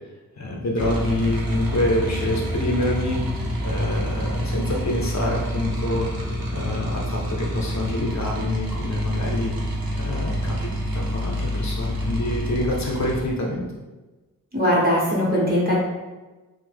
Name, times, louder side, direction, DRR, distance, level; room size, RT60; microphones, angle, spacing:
voice 1, 0.4-6.1 6.5-9.5 10.0-13.7, left 1 dB, 50° left, -2 dB, 0.6 m, -27 dB
sound 1, 0.8-13.2, equal, 85° right, 0.7 m, -27 dB
voice 2, 14.5-15.7, equal, 25° right, -5 dB, 0.9 m, -20 dB
3.0 x 2.0 x 3.3 m, 1.2 s
wide cardioid pair, 90°, 35 cm